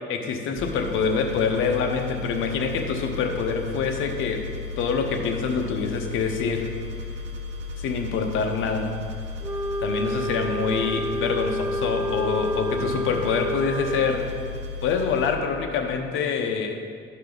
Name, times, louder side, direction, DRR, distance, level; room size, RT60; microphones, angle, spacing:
voice 1, 0.1-4.5 4.8-6.7 7.8-8.9 9.8-14.4 14.8-16.8, left 5 dB, 90° left, 4 dB, 0.9 m, -26 dB
sound 1, 0.6-15.3, left 3 dB, 60° right, 1.1 m, -35 dB
Wind instrument woodwind instrument, 9.4-14.3, right 1 dB, 15° right, 0.4 m, -29 dB
12.0 x 5.4 x 3.9 m, 2.2 s
cardioid pair, 90°, 20 cm